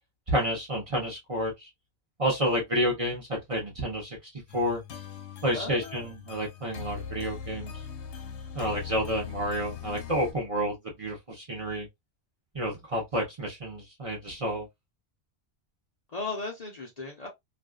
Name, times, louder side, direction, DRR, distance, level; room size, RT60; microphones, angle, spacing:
voice 1, 0.3-1.7 2.2-4.2 4.5-4.8 5.4-7.7 8.5-11.9 12.5-14.7, equal, 35° right, 0.7 m, -30 dB
sound 1, 4.5-10.3, left 8 dB, 85° left, 0.9 m, -40 dB
voice 2, 5.5-6.1 16.1-17.3, left 3 dB, 45° left, 0.7 m, -36 dB
2.4 x 2.2 x 2.2 m
omnidirectional pair, 1.1 m